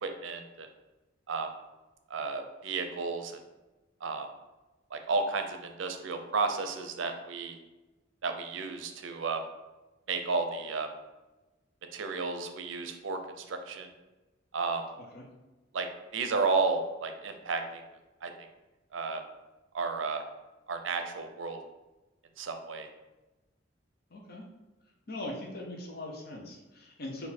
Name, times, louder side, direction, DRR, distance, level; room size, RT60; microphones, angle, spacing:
voice 1, 0.0-0.7 1.3-1.5 2.1-3.4 4.0-4.3 4.9-7.6 8.2-9.4 10.1-10.9 11.9-13.9 14.5-14.9 15.7-15.9 16.1-17.8 18.2-18.5 18.9-19.2 19.7-20.2 20.7-21.6 22.4-22.9, right 4 dB, 85° right, 6 dB, 0.5 m, -32 dB
voice 2, 24.1-24.4 25.1-27.3, left 1 dB, 55° left, 0 dB, 0.8 m, -41 dB
4.2 x 2.6 x 4.2 m, 1.1 s
head